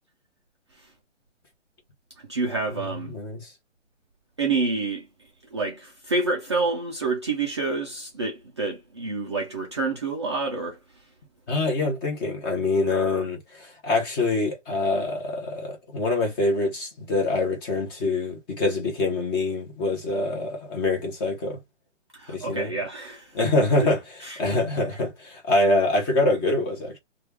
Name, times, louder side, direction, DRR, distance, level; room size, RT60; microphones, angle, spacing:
voice 1, 2.3-3.1 4.4-5.1 5.5-10.8 22.1-23.4 24.2-24.4, right 3 dB, 25° right, 0.4 m, -28 dB
voice 2, 3.1-3.5 11.5-21.6 22.3-22.8 23.3-27.0, left 2 dB, 20° left, 0.9 m, -25 dB
3.1 x 2.4 x 3.4 m
hypercardioid pair, 150°, 36 cm